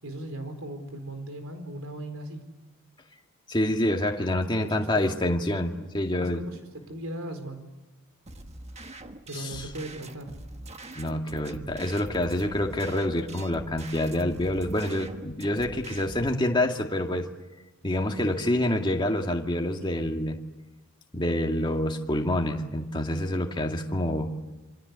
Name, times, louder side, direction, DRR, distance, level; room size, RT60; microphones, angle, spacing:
voice 1, 0.0-2.4 4.5-4.9 6.2-6.6 6.9-7.7 9.3-10.3 18.1-18.4 19.8-20.1, right 1 dB, 70° right, 7 dB, 4.5 m, -38 dB
voice 2, 3.5-6.4 9.3-9.7 10.9-17.3 17.8-20.4 21.1-24.3, left 1 dB, 20° left, 2 dB, 2.1 m, -27 dB
sound 1, 8.3-16.3, right 2 dB, 30° right, 1.4 m, -44 dB
27.0 x 25.5 x 8.2 m, 1.1 s
head